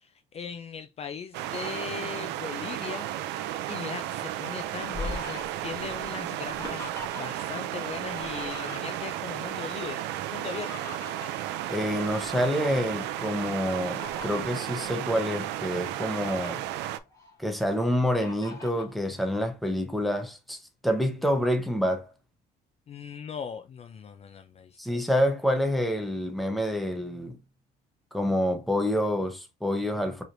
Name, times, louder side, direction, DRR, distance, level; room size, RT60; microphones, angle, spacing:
voice 1, 0.0-6.9 7.2-10.0 10.3-10.8 22.9-24.9, left 7 dB, 40° left, 0.4 m, -39 dB
sound 1, 1.3-17.0, right 13 dB, 90° right, 0.4 m, -34 dB
Fowl, 4.6-7.5 7.8-9.3 10.2-12.3 12.8-13.0 13.6-14.7 15.3-15.4 15.8-16.5 17.1-17.8 18.2-18.9, left 3 dB, 20° left, 2.3 m, -42 dB
voice 2, 11.7-16.6 17.4-22.1 24.8-27.4 28.1-30.2, equal, ahead, 0.9 m, -27 dB
4.8 x 3.1 x 2.6 m
cardioid pair, 110°, 17 cm